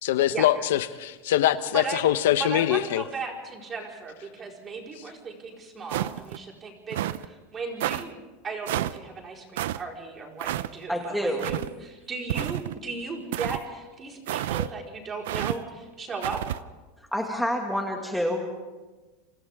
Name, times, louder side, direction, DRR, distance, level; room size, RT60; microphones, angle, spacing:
voice 1, 0.0-3.0, left 13 dB, 85° left, 12 dB, 1.0 m, -23 dB
voice 2, 1.7-2.1 2.4-8.1 8.4-16.4, right 4 dB, 20° right, 0 dB, 4.6 m, -36 dB
sound 1, 5.9-6.4 6.9-7.3 7.8-8.0 8.7-9.0 9.6-9.8 10.4-10.7 11.4-11.7 12.3-12.8 13.3-13.6 14.3-14.7 15.3-15.6 16.2-16.6, right 13 dB, 80° right, 0.6 m, -29 dB
voice 3, 10.9-11.5 17.1-18.5, equal, ahead, 1 dB, 2.1 m, -27 dB
29.5 x 26.5 x 3.7 m, 1.2 s
supercardioid pair, 145°, 0 cm